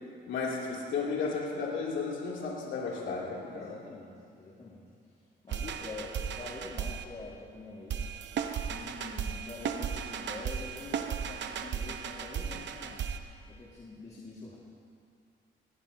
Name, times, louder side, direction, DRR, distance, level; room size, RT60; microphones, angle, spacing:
voice 1, 0.3-3.8, left 4 dB, 75° left, -4 dB, 3.1 m, -34 dB
voice 2, 3.5-4.8 5.4-8.1 8.7-13.0 13.5-14.6, left 3 dB, 30° left, -6 dB, 2.2 m, -45 dB
sound 1, 5.5-7.0 7.9-13.2, right 7 dB, 65° right, 0.9 m, -35 dB
19.0 x 18.0 x 2.9 m, 2.4 s
cardioid pair, 90°, 20 cm